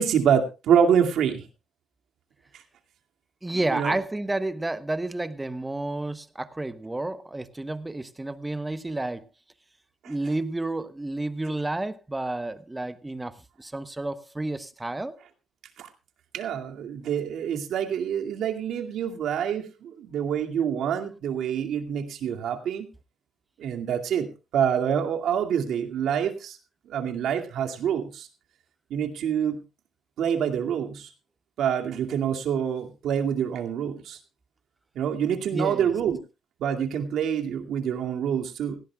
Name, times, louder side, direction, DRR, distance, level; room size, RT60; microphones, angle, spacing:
voice 1, 0.0-1.4 3.7-3.9 15.8-15.9 16.3-22.9 23.6-24.3 24.5-26.6 26.9-28.3 28.9-29.6 30.2-31.1 31.6-34.2 34.9-36.2 36.6-38.8, right 8 dB, 75° right, 2.3 m, -26 dB
voice 2, 3.4-9.3 10.1-15.2 35.5-35.9, right 2 dB, 15° right, 1.1 m, -31 dB
17.0 x 17.0 x 2.3 m
cardioid pair, 90°, 0 cm